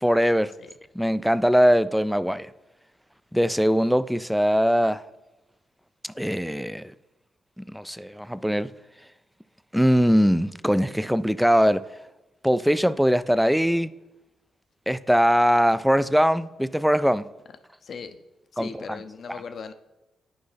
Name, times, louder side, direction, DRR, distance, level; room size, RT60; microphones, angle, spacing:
voice 1, 0.0-0.5 1.0-2.5 3.3-5.0 6.2-6.9 7.6-8.7 9.7-11.8 12.4-13.9 14.9-17.2 18.6-18.9 19.3-19.4, equal, ahead, 0.3 m, -21 dB
voice 2, 17.8-18.2 18.5-19.7, left 5 dB, 60° left, 0.6 m, -38 dB
9.5 x 5.3 x 3.4 m
hypercardioid pair, 45°, 0 cm